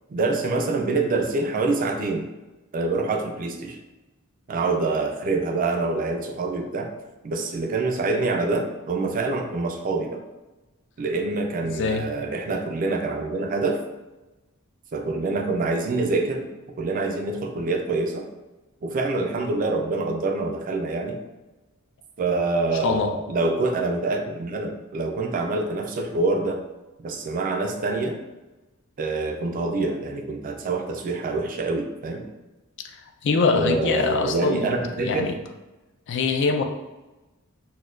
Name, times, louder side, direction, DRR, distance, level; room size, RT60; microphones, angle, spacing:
voice 1, 0.1-2.3 2.7-3.8 4.5-6.9 7.2-10.2 11.0-13.8 14.9-16.5 16.8-18.3 18.8-21.2 22.2-26.6 27.0-28.2 29.0-32.3 33.5-35.4, right 3 dB, 40° right, 4 dB, 0.4 m, -26 dB
voice 2, 11.6-12.1 22.8-23.1 33.2-34.7 35.0-35.3 36.1-36.6, left 4 dB, 55° left, 6 dB, 0.3 m, -23 dB
4.1 x 2.2 x 2.4 m, 1.1 s
head